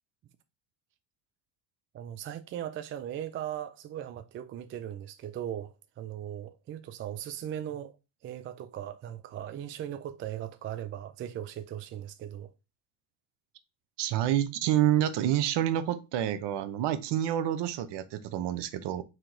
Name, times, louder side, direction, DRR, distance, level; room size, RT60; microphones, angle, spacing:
voice 1, 1.9-7.9 8.2-12.5, right 11 dB, 30° right, 0.3 m, -38 dB
voice 2, 14.0-19.0, right 11 dB, 55° right, 0.8 m, -28 dB
4.5 x 2.9 x 3.8 m
supercardioid pair, 85°, 50 cm